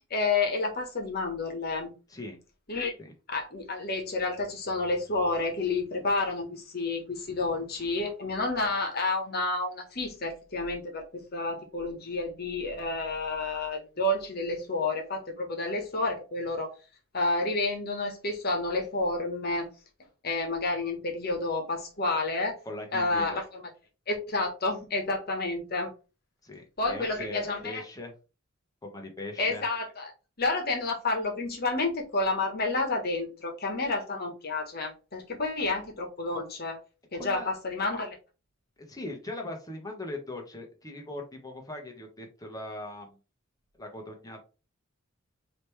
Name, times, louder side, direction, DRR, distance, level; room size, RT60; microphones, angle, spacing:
voice 1, 0.1-1.9 2.7-3.0 3.3-16.7 17.1-19.7 20.2-22.5 22.9-23.6 24.1-25.9 26.8-27.8 29.4-30.1 30.4-36.8 37.1-38.2, left 3 dB, 50° left, 1.3 m, -30 dB
voice 2, 22.6-23.4 26.4-28.1 28.8-29.7 37.1-37.6 38.9-43.1 43.8-44.4, left 1 dB, 20° left, 1.1 m, -40 dB
5.1 x 3.0 x 3.3 m
head